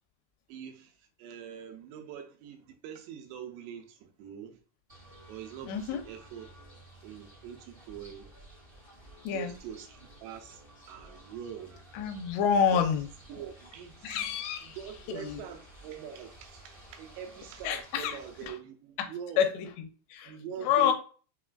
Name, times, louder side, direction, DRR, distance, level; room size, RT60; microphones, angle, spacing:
voice 1, 0.5-4.6 5.3-6.5 7.0-8.3 9.3-11.8 12.7-12.9 13.3-19.5 20.3-20.9, right 9 dB, 85° right, 2.8 m, -44 dB
sound 1, 4.9-18.5, right 1 dB, 40° right, 0.7 m, -53 dB
voice 2, 5.6-6.0 9.2-9.5 11.9-13.1 14.0-14.8 15.1-15.4 17.6-18.2 19.4-20.3 20.6-20.9, left 8 dB, 85° left, 2.7 m, -28 dB
6.4 x 2.4 x 2.2 m
omnidirectional pair, 4.8 m